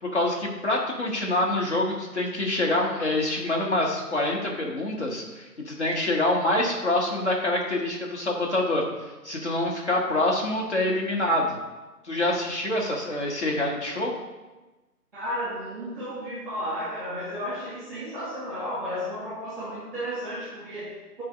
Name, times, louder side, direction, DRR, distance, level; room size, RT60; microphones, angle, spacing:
voice 1, 0.0-8.8 9.2-11.5 12.0-14.1, left 1 dB, 45° left, -1 dB, 1.7 m, -26 dB
voice 2, 15.1-21.2, equal, 10° right, -8 dB, 1.5 m, -33 dB
9.1 x 4.7 x 5.2 m, 1.1 s
figure-of-eight pair, 155°, 48 cm